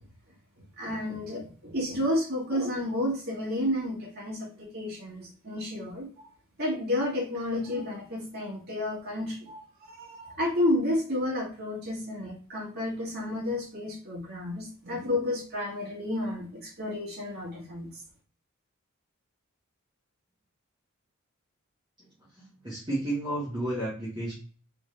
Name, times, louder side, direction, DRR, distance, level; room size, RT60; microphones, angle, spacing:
voice 1, 0.8-6.3 6.6-17.9, left 1 dB, 50° right, -4 dB, 1.7 m, -31 dB
voice 2, 22.4-24.3, right 1 dB, 20° right, -8 dB, 1.4 m, -32 dB
3.6 x 3.4 x 3.2 m, 0.41 s
head